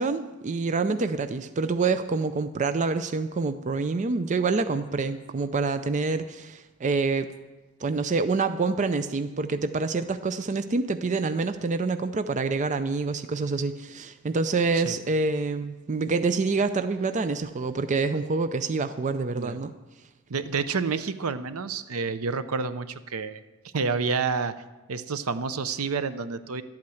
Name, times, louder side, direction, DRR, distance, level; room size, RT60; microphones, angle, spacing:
voice 1, 0.0-7.3 7.8-19.7, right 4 dB, 35° right, 10 dB, 0.4 m, -27 dB
voice 2, 20.3-23.4 23.7-24.5 24.9-26.6, right 5 dB, 70° right, 12 dB, 0.7 m, -29 dB
12.0 x 8.6 x 7.7 m, 1.2 s
head